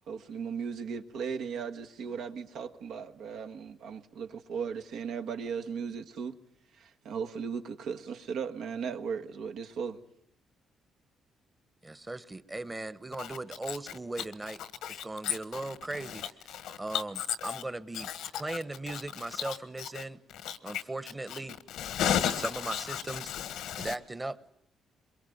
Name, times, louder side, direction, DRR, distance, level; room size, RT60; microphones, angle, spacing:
voice 1, 0.1-6.4 6.7-10.0, right 6 dB, 80° right, 1.5 m, -37 dB
voice 2, 11.8-14.6 14.9-16.2 16.8-18.1 18.4-20.2 20.6-21.6 22.4-23.3 23.8-24.5, right 2 dB, 15° right, 1.1 m, -38 dB
voice 3, 21.8-23.9, left 9 dB, 85° left, 1.4 m, -31 dB
22.5 x 22.5 x 9.3 m
cardioid pair, 90°, 0 cm